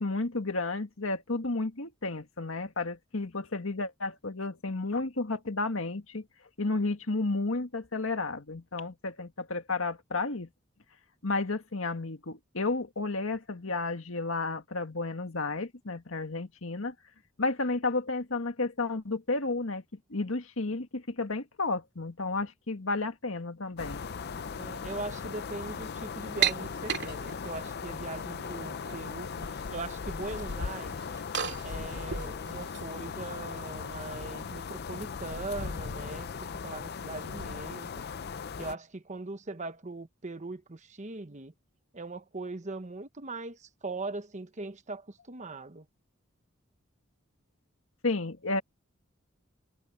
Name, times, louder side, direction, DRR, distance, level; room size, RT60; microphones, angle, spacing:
voice 1, 0.0-6.2 6.6-10.5 11.2-16.9 17.4-19.8 20.1-24.0 48.0-48.6, left 3 dB, 80° left, 1.8 m, -32 dB
sound 1, 23.8-38.7, left 5 dB, 50° left, 0.5 m, -38 dB
voice 2, 24.5-31.0 31.6-36.3 36.6-38.0 38.6-41.5 41.9-45.9, right 3 dB, 35° right, 1.1 m, -40 dB
sound 2, 26.4-27.7 28.4-29.0 29.2-29.8 30.1-32.8, right 9 dB, 60° right, 2.7 m, -34 dB
head